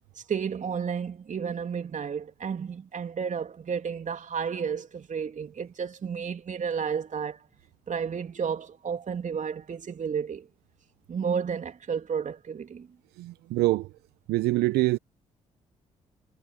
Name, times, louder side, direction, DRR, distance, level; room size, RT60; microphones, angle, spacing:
voice 1, 0.1-7.4 7.9-10.5 11.1-12.9, right 6 dB, 50° right, 3.1 m, -32 dB
voice 2, 13.2-13.9 14.3-15.0, right 19 dB, 75° right, 1.0 m, -25 dB
hypercardioid pair, 45°, 17 cm